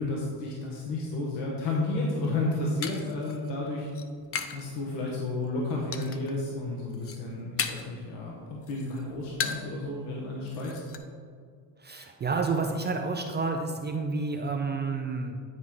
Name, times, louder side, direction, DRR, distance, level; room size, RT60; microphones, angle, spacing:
voice 1, 0.0-3.9 4.5-10.8, left 2 dB, 65° left, -3 dB, 1.3 m, -32 dB
sound 1, 2.2-4.7 5.0-5.5 5.9-6.4 6.8-8.0 8.4-9.8 10.1-10.2 10.5-11.0, left 7 dB, 30° left, 0.5 m, -36 dB
voice 2, 11.8-15.4, right 4 dB, 25° right, 4 dB, 0.4 m, -30 dB
9.6 x 4.6 x 3.8 m, 2.1 s
cardioid pair, 120°, 45 cm